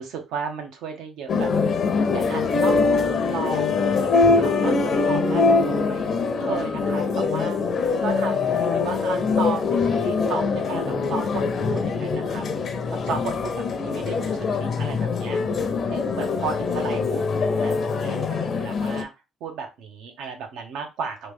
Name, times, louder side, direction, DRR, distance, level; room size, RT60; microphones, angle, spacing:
voice 1, 0.0-2.9 3.3-6.1 6.4-7.6 8.0-12.4 13.0-15.4 15.9-17.2 17.6-19.1 19.4-21.3, right 5 dB, 80° right, 4 dB, 1.0 m, -34 dB
sound 1, 1.3-19.0, left 4 dB, 45° left, 0.6 m, -23 dB
3.2 x 2.7 x 3.3 m, 0.26 s
cardioid pair, 115°, 0 cm